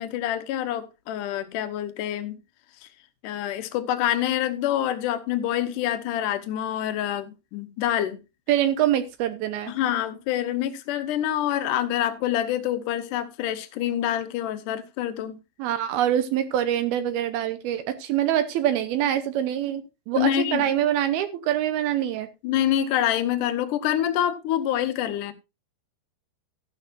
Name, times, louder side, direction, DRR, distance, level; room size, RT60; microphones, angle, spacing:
voice 1, 0.0-2.4 2.8-2.9 3.2-8.2 9.7-15.4 20.2-20.6 22.4-25.3, left 11 dB, 70° left, 2.1 m, -26 dB
voice 2, 8.5-9.7 15.6-22.3, right 11 dB, 75° right, 2.6 m, -25 dB
13.5 x 11.0 x 2.6 m
omnidirectional pair, 4.8 m